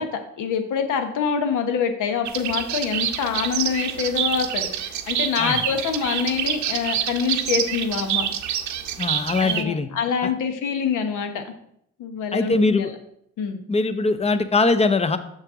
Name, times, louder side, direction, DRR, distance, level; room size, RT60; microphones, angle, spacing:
voice 1, 0.0-8.3 9.4-11.4 12.0-12.9 13.4-13.6, left 6 dB, 70° left, 7 dB, 1.1 m, -25 dB
sound 1, 2.2-9.6, right 10 dB, 65° right, 0.7 m, -27 dB
voice 2, 9.0-9.9 10.2-10.3 12.3-12.9 13.7-15.2, left 3 dB, 20° left, 11 dB, 0.6 m, -21 dB
6.4 x 6.0 x 3.6 m, 0.74 s
supercardioid pair, 75°, 32 cm